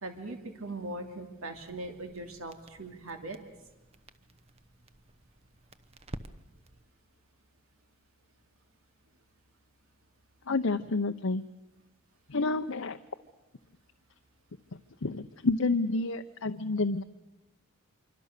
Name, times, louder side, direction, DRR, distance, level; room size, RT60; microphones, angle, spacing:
voice 1, 0.0-3.4, right 2 dB, 80° right, 5 dB, 2.7 m, -40 dB
Crackle, 1.5-6.8, right 1 dB, 30° right, 0.9 m, -50 dB
voice 2, 10.5-11.4 12.3-13.0 15.0-17.0, left 3 dB, 70° left, 6 dB, 0.8 m, -29 dB
26.5 x 24.5 x 6.7 m, 1.1 s
head